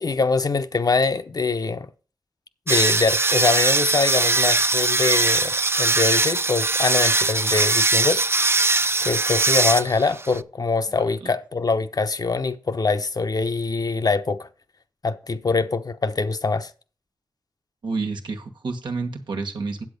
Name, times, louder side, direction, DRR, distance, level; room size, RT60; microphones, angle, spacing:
voice 1, 0.0-1.9 2.7-8.2 9.0-14.5 15.0-16.7, left 4 dB, 55° left, 0.8 m, -24 dB
sound 1, 2.7-10.4, right 3 dB, 35° right, 0.5 m, -21 dB
voice 2, 17.8-19.8, right 4 dB, 90° right, 1.4 m, -29 dB
8.5 x 7.6 x 5.3 m
cardioid pair, 40°, 8 cm